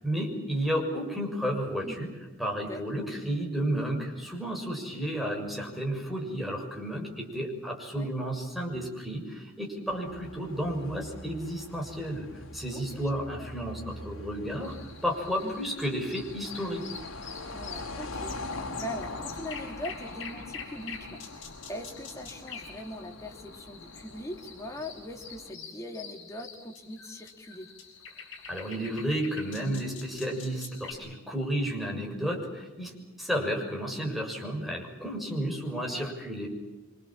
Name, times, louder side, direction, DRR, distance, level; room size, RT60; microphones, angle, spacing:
voice 1, 0.0-2.1 2.4-12.3 12.5-16.8 28.5-32.9 33.2-36.5, equal, ahead, 0 dB, 6.6 m, -32 dB
voice 2, 2.6-3.1 7.9-8.1 12.7-13.0 13.4-13.5 15.4-15.7 17.5-27.7 35.8-36.2, equal, 15° left, 2 dB, 3.2 m, -41 dB
sound 1, 9.9-25.5, left 2 dB, 90° left, 2.6 m, -43 dB
sound 2, 14.6-30.9, left 6 dB, 65° left, 7.4 m, -46 dB
27.5 x 25.5 x 7.4 m, 1.1 s
head